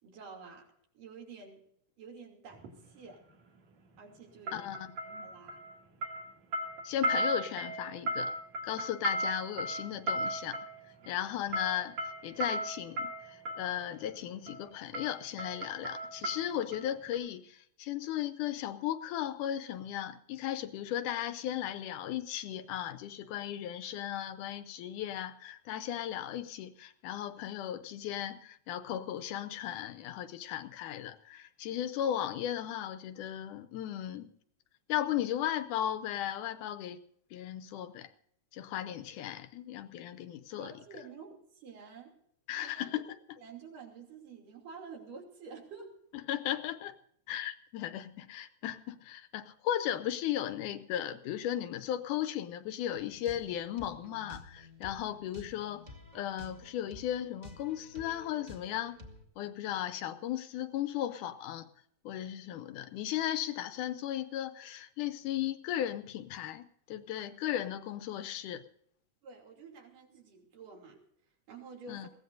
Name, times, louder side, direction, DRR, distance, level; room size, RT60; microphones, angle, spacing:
voice 1, 0.0-0.7 0.9-1.7 2.0-3.2 4.0-4.9 5.2-5.6 11.0-11.3 40.6-42.1 42.6-45.9 69.2-71.0 71.5-72.1, right 5 dB, 70° right, 0 dB, 4.5 m, -50 dB
sound 1, 2.5-2.7 4.5-5.8 6.0-13.7 14.5-14.7 14.9-16.8 17.1-17.2, equal, 55° right, 3.3 m, -36 dB
voice 2, 4.5-5.3 6.8-8.3 8.6-10.6 11.1-12.0 12.2-34.3 34.9-37.0 37.3-38.1 38.5-40.7 42.5-43.0 46.3-47.0 47.3-55.9 56.1-59.0 59.4-61.7 62.1-68.6 71.9-72.1, left 11 dB, 80° left, 11 dB, 2.0 m, -36 dB
sound 2, 53.0-59.2, left 2 dB, 20° right, 1.1 m, -52 dB
22.0 x 16.5 x 2.6 m, 0.68 s
omnidirectional pair, 3.9 m